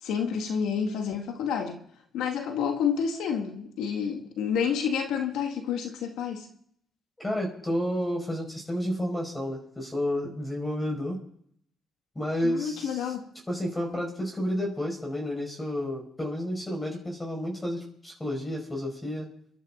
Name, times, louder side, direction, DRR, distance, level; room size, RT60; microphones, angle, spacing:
voice 1, 0.0-1.8 2.1-6.5 12.4-13.3, left 7 dB, 90° left, 2.0 m, -29 dB
voice 2, 7.2-11.2 12.1-13.0 13.5-19.3, left 1 dB, 15° left, 5.9 m, -31 dB
25.0 x 12.5 x 4.0 m
cardioid pair, 90°, 0 cm